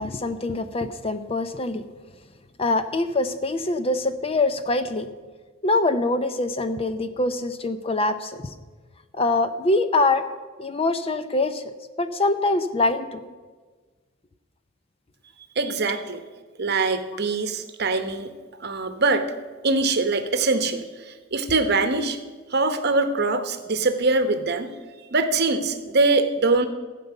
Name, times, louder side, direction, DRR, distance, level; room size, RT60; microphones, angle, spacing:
voice 1, 0.0-1.8 2.6-5.1 5.6-8.4 9.1-10.3 10.6-11.6 12.0-13.3, left 2 dB, 30° left, 10 dB, 0.6 m, -24 dB
voice 2, 15.6-16.2 16.6-18.3 18.6-19.3 19.6-22.2 22.5-24.7 25.1-26.7, right 3 dB, 50° right, 8 dB, 0.9 m, -23 dB
15.0 x 5.4 x 8.0 m, 1.4 s
head